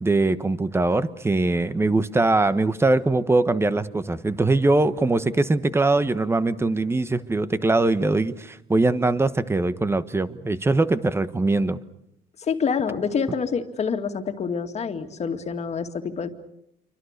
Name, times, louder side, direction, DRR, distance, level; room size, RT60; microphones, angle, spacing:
voice 1, 0.0-11.8, right 2 dB, 15° right, 13 dB, 1.3 m, -22 dB
voice 2, 12.4-16.3, left 6 dB, 40° left, 6 dB, 2.4 m, -27 dB
28.5 x 24.5 x 6.7 m, 0.79 s
cardioid pair, 110°, 17 cm